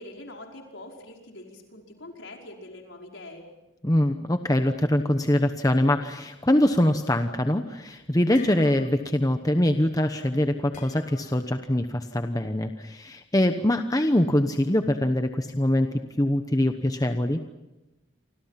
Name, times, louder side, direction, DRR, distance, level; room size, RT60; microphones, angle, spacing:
voice 1, 0.0-3.5, left 1 dB, 80° left, 1 dB, 5.3 m, -44 dB
voice 2, 3.8-15.9 16.2-17.4, left 1 dB, 20° left, 7 dB, 1.0 m, -23 dB
sound 1, 7.7-7.8 8.1-9.2 9.4-9.7 10.7-11.4, left 3 dB, 40° left, 4.8 m, -47 dB
30.0 x 25.5 x 5.9 m, 0.99 s
head